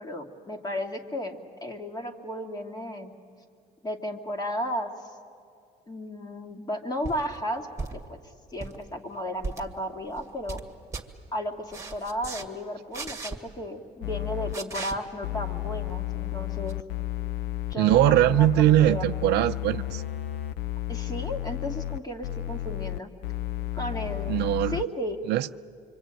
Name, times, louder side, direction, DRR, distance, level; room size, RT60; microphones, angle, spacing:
voice 1, 0.0-3.1 3.8-5.1 5.9-8.2 8.5-10.6 11.3-16.8 17.7-19.1 20.9-23.1 23.7-24.4 24.7-25.2, equal, 25° left, 4 dB, 2.4 m, -34 dB
sound 1, 7.0-7.2 7.8-8.1 8.5-8.8 9.4-9.7 10.1-10.6 10.9-11.1 11.7-12.5 12.9-13.4 14.5-15.0 16.7-16.8, right 4 dB, 15° right, 2.0 m, -36 dB
sound 2, 14.0-14.6 15.2-24.9, left 16 dB, 85° left, 0.6 m, -32 dB
voice 2, 17.8-20.0 24.3-24.8 25.3-25.6, right 14 dB, 80° right, 12 dB, 0.6 m, -21 dB
25.5 x 25.0 x 9.0 m, 2.3 s
cardioid pair, 110°, 17 cm